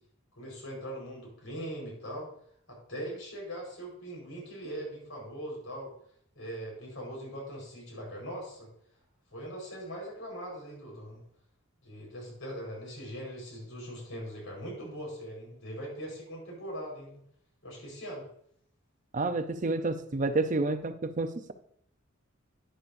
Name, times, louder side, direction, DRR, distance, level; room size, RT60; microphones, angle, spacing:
voice 1, 0.4-2.3 2.7-5.9 6.3-8.7 9.3-11.2 11.8-17.2 17.6-18.2, equal, 75° left, -1 dB, 4.6 m, -41 dB
voice 2, 19.1-21.5, right 3 dB, 40° right, 8 dB, 0.6 m, -29 dB
11.5 x 10.0 x 2.6 m, 0.66 s
head